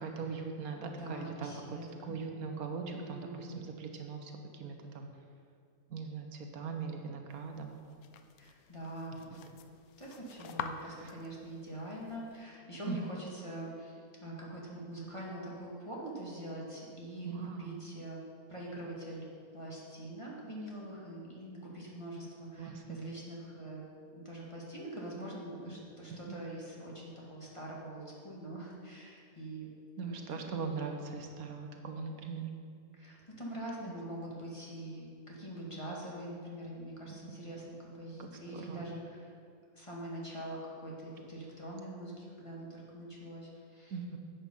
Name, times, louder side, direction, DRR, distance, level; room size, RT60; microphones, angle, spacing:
voice 1, 0.0-5.1 5.9-7.7 9.3-9.4 10.8-11.1 12.9-13.0 17.2-17.7 22.6-23.0 25.7-25.8 26.1-26.3 30.0-32.5 38.2-38.9 43.9-44.2, right 5 dB, 80° right, 4 dB, 1.4 m, -40 dB
voice 2, 1.0-2.1 2.9-3.5 8.4-9.4 10.0-19.3 19.5-23.8 24.1-29.7 30.0-30.5 32.9-39.3 39.7-43.9, right 1 dB, 20° left, -4 dB, 1.9 m, -44 dB
sound 1, 7.3-12.4, left 7 dB, 80° left, 1.1 m, -47 dB
11.0 x 7.7 x 5.3 m, 2.3 s
omnidirectional pair, 1.5 m